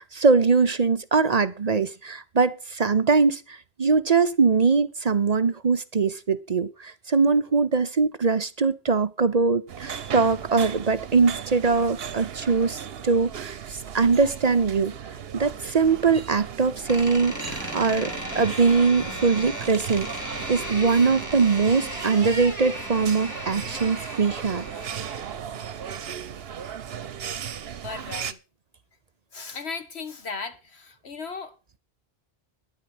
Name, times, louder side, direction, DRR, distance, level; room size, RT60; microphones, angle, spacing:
voice 1, 0.0-14.9 15.3-20.1 20.5-24.6, right 4 dB, 45° right, 0.8 m, -22 dB
sound 1, 9.7-28.3, right 8 dB, 70° right, 1.1 m, -37 dB
Door, 16.9-25.4, equal, 15° left, 2.9 m, -36 dB
voice 2, 27.8-28.4 29.3-31.8, left 4 dB, 85° left, 2.0 m, -36 dB
12.0 x 10.5 x 6.1 m
omnidirectional pair, 1.1 m